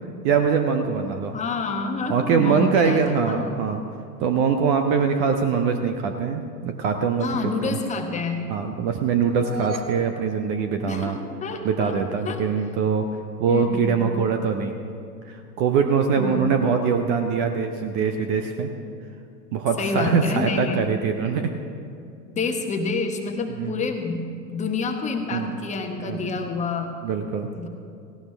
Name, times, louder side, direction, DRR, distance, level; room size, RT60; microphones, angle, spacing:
voice 1, 0.2-1.3 2.1-3.8 4.2-7.8 8.5-11.2 11.6-13.1 13.4-14.7 15.3-18.7 19.5-21.5 23.6-23.8 25.3-25.6 26.0-26.3 27.0-27.5, right 6 dB, 20° right, 6 dB, 0.5 m, -23 dB
voice 2, 1.3-3.5 7.2-8.5 10.9-11.9 12.2-12.4 13.5-14.1 16.2-16.5 19.8-20.9 22.4-26.9 27.6-27.7, left 3 dB, 15° left, 4 dB, 1.2 m, -28 dB
sound 1, 9.2-11.5, right 4 dB, 80° right, 1.0 m, -38 dB
17.5 x 16.5 x 3.4 m, 2.4 s
figure-of-eight pair, 100°, 50 cm